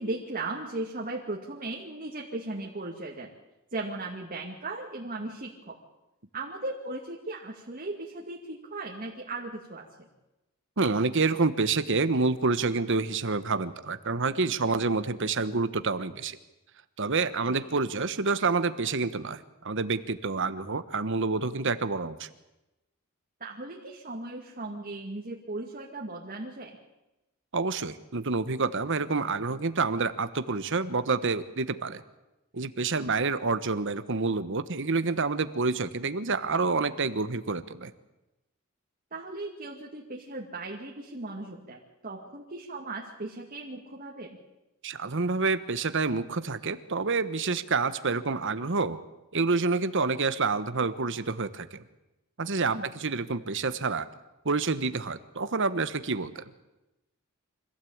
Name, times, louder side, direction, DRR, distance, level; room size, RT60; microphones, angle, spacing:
voice 1, 0.0-3.3 3.7-5.8 6.3-10.1 17.5-17.6 23.4-26.8 39.1-44.4 52.7-52.9, right 2 dB, 40° right, -1 dB, 2.3 m, -37 dB
voice 2, 10.8-16.4 17.0-22.3 27.5-32.0 32.5-37.9 44.8-49.0 49.3-51.8 52.4-54.1 54.4-56.4, right 4 dB, 60° right, 12 dB, 1.2 m, -28 dB
25.5 x 16.0 x 8.8 m, 0.98 s
head